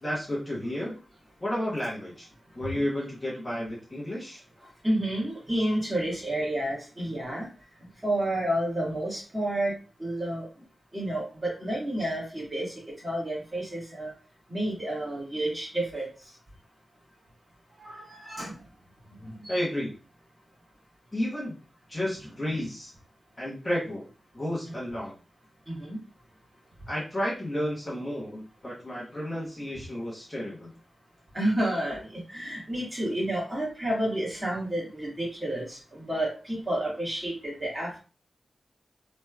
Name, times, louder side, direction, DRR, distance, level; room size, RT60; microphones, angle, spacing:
voice 1, 0.0-1.0 1.4-2.3 2.5-4.4 19.5-19.9 21.1-21.5 21.9-22.9 23.4-24.1 24.3-25.1 26.9-30.7, left 1 dB, 20° left, -5 dB, 0.9 m, -32 dB
voice 2, 4.8-7.5 8.0-9.7 10.0-10.5 10.9-12.7 13.0-14.1 14.5-16.1 17.8-18.5 19.2-19.6 25.7-26.0 31.3-32.0 32.3-38.0, right 1 dB, 20° right, -4 dB, 1.5 m, -30 dB
3.2 x 3.0 x 2.2 m, 0.35 s
wide cardioid pair, 135°, 0 cm